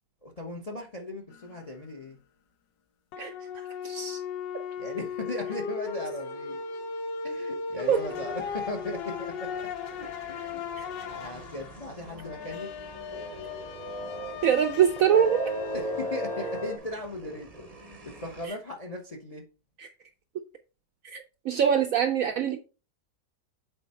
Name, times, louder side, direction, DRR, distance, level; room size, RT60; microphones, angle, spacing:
voice 1, 0.2-2.2 4.8-6.6 7.2-10.6 11.1-12.7 15.7-19.4, left 1 dB, 40° left, 0.5 m, -38 dB
sound 1, 1.3-1.5 3.1-16.8, left 6 dB, 85° left, 1.5 m, -37 dB
voice 2, 3.8-4.2 7.9-8.0 10.8-10.9 14.4-15.5 19.8-19.9 21.0-22.6, right 8 dB, 70° right, 0.8 m, -24 dB
sound 2, 7.8-18.5, right 4 dB, 35° right, 0.6 m, -41 dB
6.9 x 4.2 x 4.2 m
omnidirectional pair, 1.9 m